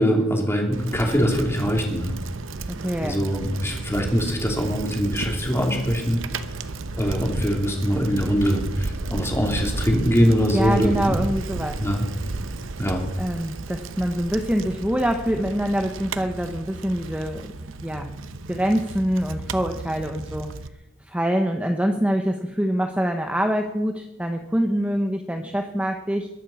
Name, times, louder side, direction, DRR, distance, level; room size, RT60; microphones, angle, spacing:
voice 1, 0.0-2.1 3.0-6.2 6.9-11.1 11.8-12.0 12.8-13.1, equal, 15° left, 1 dB, 3.0 m, -22 dB
Bicycle, 0.7-20.7, right 3 dB, 85° right, 0.8 m, -33 dB
voice 2, 2.7-3.2 10.5-11.8 13.2-17.5 17.8-18.1 18.5-20.5 21.0-26.3, equal, 5° right, 4 dB, 0.9 m, -25 dB
21.5 x 7.4 x 7.1 m, 0.96 s
head